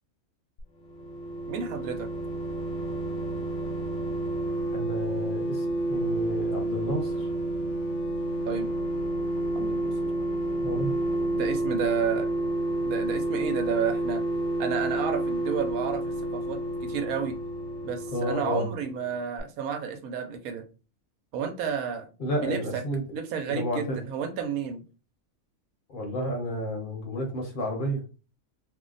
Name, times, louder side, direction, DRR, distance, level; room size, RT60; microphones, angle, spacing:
sound 1, 0.6-19.1 19.4-19.5, right 1 dB, 75° left, 1.0 m, -30 dB
voice 1, 1.5-2.1 8.5-8.7 9.5-9.9 11.3-12.3 12.8-14.2 14.6-17.4 17.8-20.7 21.3-22.1 22.4-22.8 23.1-24.8, right 7 dB, 80° right, 7 dB, 1.1 m, -31 dB
voice 2, 4.7-7.3 10.6-10.9 18.1-18.7 22.2-23.1 23.5-24.0 25.9-28.0, equal, 40° left, 1 dB, 0.9 m, -31 dB
2.7 x 2.1 x 3.8 m, 0.34 s
omnidirectional pair, 1.5 m